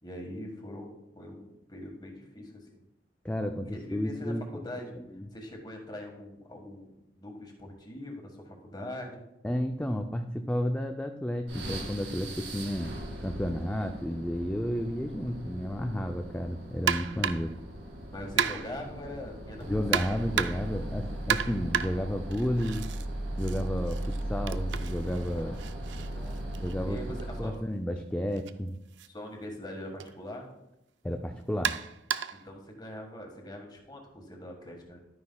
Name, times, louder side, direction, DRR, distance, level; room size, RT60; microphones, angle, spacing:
voice 1, 0.0-2.8 3.7-5.0 5.3-9.2 18.1-19.6 25.3-26.5 26.8-27.5 29.1-30.5 32.4-35.0, left 1 dB, 25° left, 2 dB, 1.5 m, -42 dB
voice 2, 3.2-4.4 5.0-5.3 9.4-12.9 13.2-17.6 19.7-22.9 23.4-25.6 26.6-27.0 27.4-28.8 31.0-31.8, equal, 5° left, 4 dB, 0.4 m, -32 dB
sound 1, 11.5-27.6, right 1 dB, 90° right, 2.2 m, -38 dB
sound 2, 16.9-17.6 18.4-18.9 19.9-20.8 21.3-23.1 23.4-27.3 28.3-28.5 29.0-29.1 30.0-30.1 31.6-32.5, right 8 dB, 70° right, 0.4 m, -32 dB
11.5 x 9.4 x 2.3 m, 0.87 s
head